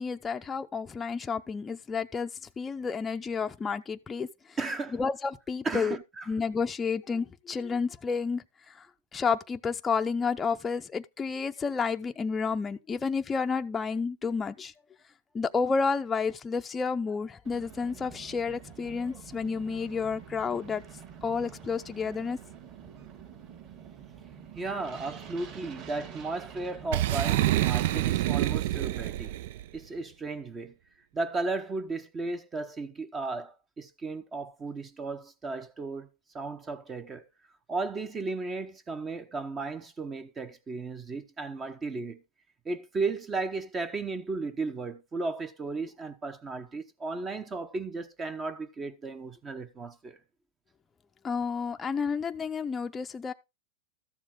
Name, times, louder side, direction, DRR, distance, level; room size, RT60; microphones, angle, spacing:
voice 1, 0.0-2.3 2.6-4.6 4.9-6.0 6.3-8.9 9.1-14.7 15.3-20.8 21.2-22.4 51.2-53.3, left 5 dB, 15° left, 0.6 m, -30 dB
voice 2, 4.6-5.0 5.6-6.3 24.5-29.3 29.7-30.7 31.1-36.1 36.3-37.3 37.7-42.2 42.6-50.2, right 3 dB, 20° right, 0.9 m, -35 dB
sound 1, 17.4-27.3, right 8 dB, 40° right, 4.3 m, -47 dB
Boom, 26.9-29.6, right 15 dB, 65° right, 0.5 m, -27 dB
13.5 x 7.1 x 3.7 m
supercardioid pair, 130°, 0 cm